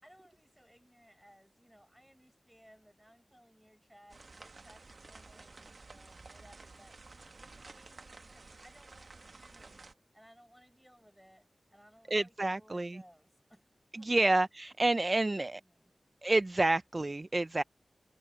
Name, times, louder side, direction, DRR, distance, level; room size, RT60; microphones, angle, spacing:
voice 1, 0.0-7.0 7.4-9.9 10.1-13.7 14.0-14.3 14.9-15.9, equal, 5° right, 7.5 m, -62 dB
sound 1, 4.1-9.9, right 3 dB, 65° right, 1.2 m, -53 dB
voice 2, 12.1-13.0 14.0-15.6 16.2-17.6, right 2 dB, 40° right, 0.5 m, -29 dB
cardioid pair, 45°, 0 cm